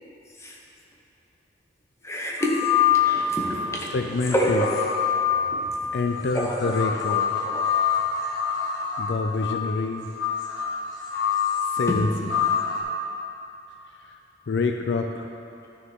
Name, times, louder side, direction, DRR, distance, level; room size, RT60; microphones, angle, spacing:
voice 1, 2.0-2.5 2.9-4.0 4.3-4.8 5.5-5.6 6.3-6.6 7.0-7.1 7.4-7.6, equal, 15° left, -2 dB, 1.0 m, -27 dB
sound 1, 2.4-3.6 4.2-12.8, left 8 dB, 90° left, 1.5 m, -26 dB
voice 2, 3.9-4.7 5.9-7.2 9.0-10.1 11.7-12.1 12.4-12.5 14.5-15.3, left 3 dB, 60° left, 4 dB, 0.4 m, -26 dB
12.0 x 6.4 x 3.6 m, 2.9 s
head